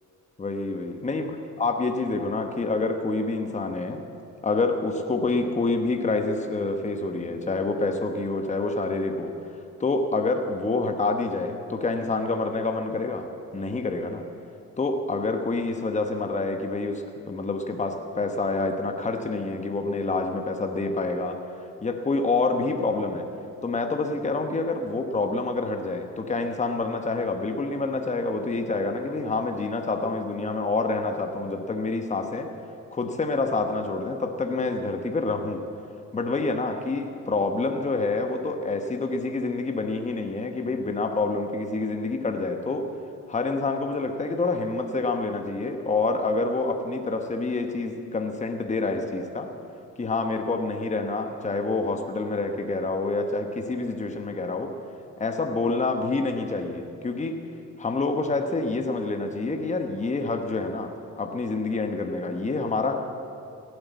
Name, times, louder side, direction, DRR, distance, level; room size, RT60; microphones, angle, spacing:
voice 1, 0.4-1.3 1.6-4.0 4.4-9.3 9.8-13.3 13.5-14.2 14.8-21.5 21.8-23.3 23.6-32.5 32.9-35.6 36.1-42.9 43.3-49.5 50.0-54.8 55.2-57.4 57.8-62.9, left 3 dB, 25° left, 5 dB, 1.2 m, -27 dB
16.5 x 8.0 x 8.2 m, 2.5 s
cardioid pair, 90°, 30 cm